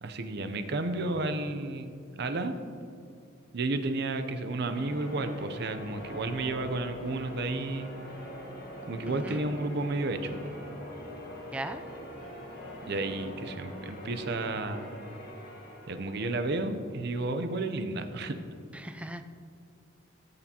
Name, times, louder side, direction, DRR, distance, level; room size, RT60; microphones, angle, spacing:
voice 1, 0.0-1.9 2.2-2.6 3.5-7.9 8.9-10.5 12.9-15.0 15.9-18.4, right 2 dB, 55° right, 8 dB, 0.6 m, -32 dB
Church bell, 4.7-17.0, equal, 50° left, 1.6 m, -44 dB
voice 2, 9.1-9.5 11.5-11.8 18.7-19.2, right 1 dB, 5° right, 8 dB, 0.3 m, -38 dB
13.5 x 6.8 x 2.9 m, 2.4 s
head